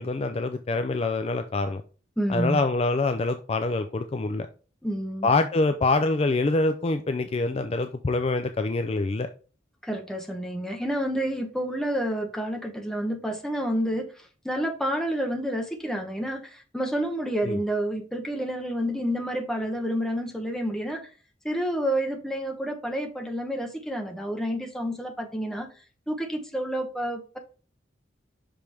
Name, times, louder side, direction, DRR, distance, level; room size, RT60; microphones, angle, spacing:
voice 1, 0.0-1.8 2.3-4.5 5.2-9.3 17.4-17.6, left 3 dB, 30° left, 0.4 m, -25 dB
voice 2, 2.2-2.6 4.8-5.3 9.8-21.1 21.4-25.7 26.1-27.4, equal, 5° left, 0.9 m, -29 dB
5.9 x 5.1 x 3.4 m
head